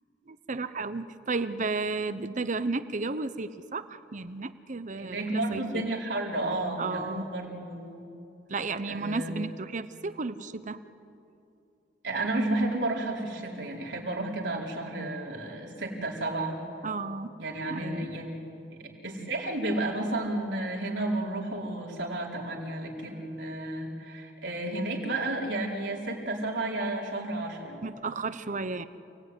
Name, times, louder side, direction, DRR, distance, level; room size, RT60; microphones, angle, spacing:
voice 1, 0.3-5.9 6.8-7.3 8.5-10.8 16.8-17.3 17.7-18.1 27.8-28.9, right 3 dB, 45° right, 13 dB, 0.9 m, -33 dB
voice 2, 5.0-8.0 8.9-9.3 12.0-16.6 17.4-18.4 18.7-27.8, right 2 dB, 85° right, -1 dB, 4.5 m, -32 dB
28.5 x 18.5 x 9.8 m, 2.7 s
head